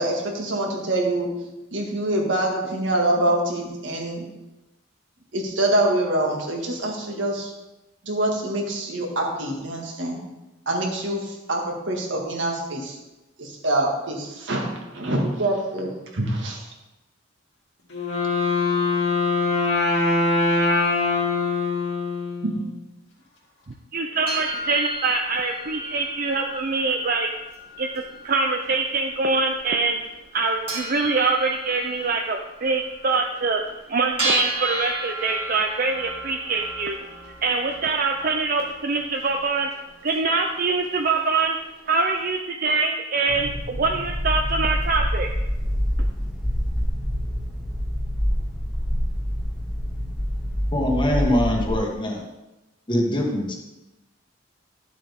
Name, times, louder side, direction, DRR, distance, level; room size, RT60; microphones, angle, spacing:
voice 1, 0.0-4.2 5.3-7.5 8.0-10.2 10.7-13.0 13.4-16.7 22.4-22.5, right 1 dB, 70° right, 0 dB, 1.9 m, -25 dB
Wind instrument woodwind instrument, 17.9-22.8, left 3 dB, 70° left, 2.7 m, -23 dB
voice 2, 23.9-27.3 27.8-27.9 28.2-30.0 30.3-33.6 33.9-37.0 37.4-39.7 40.0-41.6 41.9-45.3, right 3 dB, 50° right, 3 dB, 0.6 m, -24 dB
sound 1, 24.3-42.2, right 2 dB, 30° right, 2.6 m, -35 dB
sound 2, 43.3-51.8, equal, ahead, 1.5 m, -26 dB
voice 3, 50.7-52.2 52.9-53.6, left 1 dB, 25° left, 1 dB, 1.4 m, -23 dB
11.5 x 7.2 x 3.6 m, 1.0 s
head